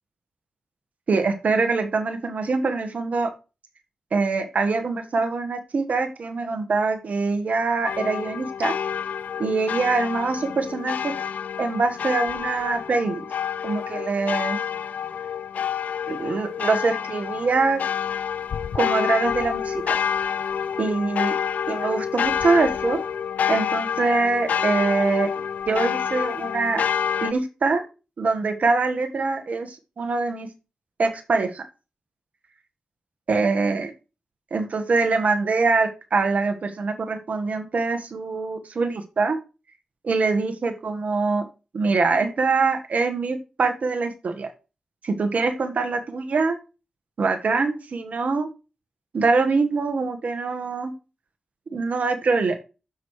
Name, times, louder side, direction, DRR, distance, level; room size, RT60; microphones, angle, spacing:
voice 1, 1.1-3.3 4.1-8.7 9.4-11.1 11.6-13.2 13.6-14.6 16.1-17.8 18.7-20.0 20.8-21.4 21.7-23.0 23.5-25.3 25.7-26.8 27.2-27.8 28.2-30.5 31.0-31.6 33.3-33.9 34.5-39.4 40.0-41.5 41.7-44.5 45.0-46.6 47.2-48.5 49.1-50.9 51.7-52.6, right 4 dB, 65° right, 7 dB, 1.4 m, -24 dB
sound 1, 7.8-27.3, left 8 dB, 75° left, 0.4 m, -28 dB
14.5 x 6.2 x 3.2 m, 0.32 s
supercardioid pair, 40°, 3 cm